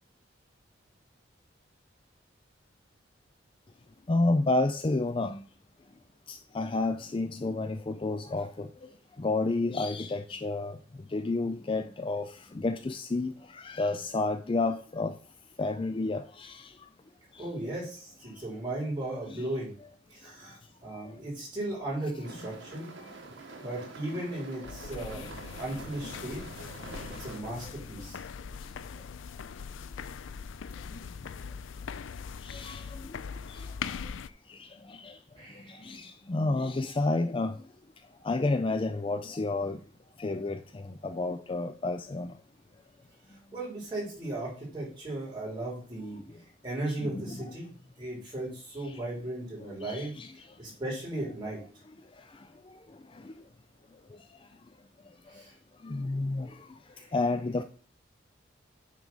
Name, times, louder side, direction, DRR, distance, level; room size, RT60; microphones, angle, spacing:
voice 1, 4.1-5.4 6.3-8.7 9.2-10.8 11.1-12.3 12.5-13.3 13.6-15.1 15.6-16.6 19.3-19.5 32.4-32.8 35.0-35.1 35.8-37.5 38.2-39.8 40.2-40.6 41.0-42.3 47.0-47.5 49.8-50.3 55.8-56.5 57.1-57.6, left 2 dB, 25° left, 0.4 m, -30 dB
voice 2, 17.4-19.7 20.1-22.9 23.6-26.4 27.2-28.2 35.4-35.8 43.5-46.2 46.6-47.7 48.0-51.6 55.3-55.5 56.9-57.1, right 1 dB, 25° right, 3.6 m, -36 dB
sound 1, 22.2-27.4, right 3 dB, 80° right, 1.2 m, -46 dB
sound 2, 24.6-34.3, left 6 dB, 90° left, 0.4 m, -41 dB
9.1 x 3.8 x 5.5 m
head